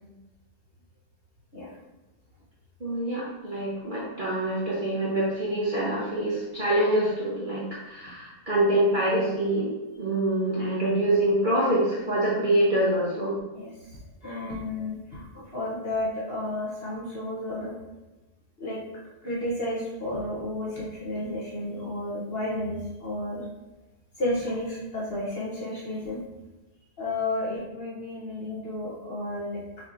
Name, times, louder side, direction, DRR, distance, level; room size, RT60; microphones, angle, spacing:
voice 1, 2.8-13.4 14.8-14.9, right 1 dB, 40° right, -7 dB, 0.8 m, -25 dB
voice 2, 14.2-17.7 18.6-18.8 19.2-23.4 24.2-26.2 27.0-29.6, left 1 dB, 45° left, -6 dB, 0.9 m, -32 dB
5.9 x 3.0 x 2.5 m, 1.0 s
omnidirectional pair, 1.7 m